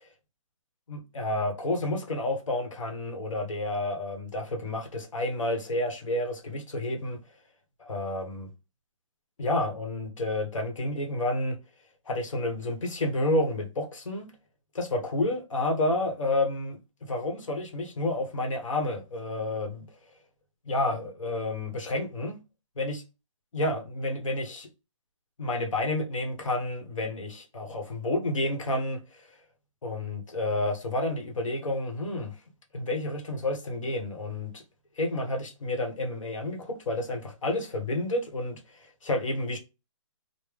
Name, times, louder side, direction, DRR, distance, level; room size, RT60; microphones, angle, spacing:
voice 1, 0.9-7.2 7.8-8.5 9.4-11.6 12.1-14.3 14.7-19.8 20.7-22.3 22.8-23.0 23.5-24.7 25.4-29.3 29.8-32.3 32.7-34.6 35.0-39.6, left 1 dB, 70° left, 1.2 m, -30 dB
3.3 x 2.2 x 3.4 m
hypercardioid pair, 165°, 17 cm